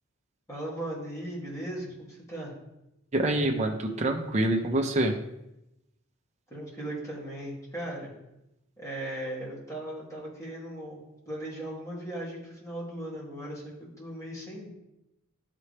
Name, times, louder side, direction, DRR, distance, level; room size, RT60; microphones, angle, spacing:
voice 1, 0.5-2.5 6.5-8.1 8.8-14.7, right 1 dB, 15° left, -6 dB, 2.4 m, -38 dB
voice 2, 3.1-5.1, right 1 dB, 30° right, 1 dB, 0.7 m, -26 dB
11.5 x 4.1 x 3.3 m, 0.88 s
head